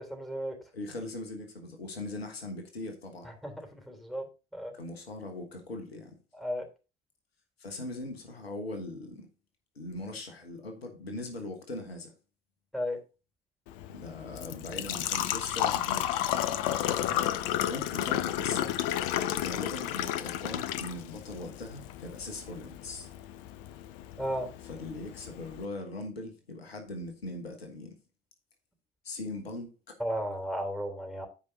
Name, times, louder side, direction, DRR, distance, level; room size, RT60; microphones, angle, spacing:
voice 1, 0.0-0.6 3.2-4.3 4.5-4.7 6.3-6.7 12.7-13.0 16.9-17.2 24.2-24.5 30.0-31.3, equal, ahead, 3.5 m, -34 dB
voice 2, 0.7-3.3 4.7-6.1 7.6-9.3 9.7-12.1 13.9-16.3 17.6-18.7 19.3-23.1 24.7-28.0 29.0-30.0, left 2 dB, 85° left, 1.4 m, -40 dB
Engine / Trickle dribble / Fill (with liquid), 13.7-25.6, left 12 dB, 65° left, 0.7 m, -32 dB
15.5 x 5.1 x 2.8 m
figure-of-eight pair, 55°, 30 cm